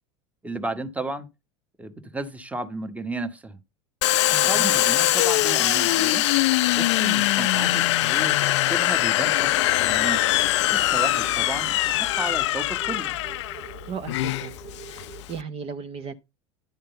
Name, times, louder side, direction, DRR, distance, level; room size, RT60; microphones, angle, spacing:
voice 1, 0.4-1.3 1.8-3.6 4.3-6.3 6.7-10.2 10.7-13.2, right 2 dB, 10° right, 1.2 m, -33 dB
Domestic sounds home sounds, 4.0-15.4, left 16 dB, 70° left, 0.4 m, -22 dB
voice 2, 4.3-4.7 13.9-14.6 14.9-16.1, right 6 dB, 40° right, 0.8 m, -36 dB
sound 1, 9.2-15.2, right 7 dB, 65° right, 2.1 m, -47 dB
10.5 x 3.6 x 6.8 m
hypercardioid pair, 85°, 15 cm